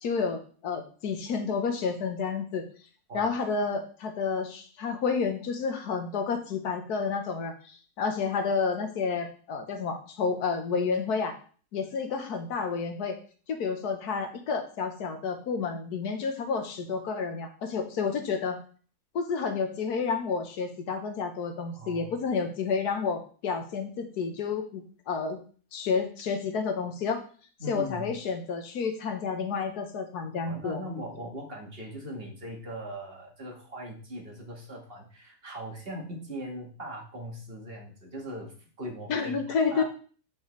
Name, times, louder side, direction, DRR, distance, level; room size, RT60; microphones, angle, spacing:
voice 1, 0.0-2.6 3.1-11.3 11.7-13.2 13.5-18.6 19.1-25.4 25.7-27.2 27.7-30.8 39.1-39.8, left 5 dB, 80° left, 6 dB, 1.5 m, -30 dB
voice 2, 21.7-22.1 27.6-28.1 30.4-39.4 39.7-39.8, equal, 40° right, 0 dB, 1.7 m, -40 dB
8.2 x 5.4 x 3.2 m, 0.41 s
omnidirectional pair, 1.7 m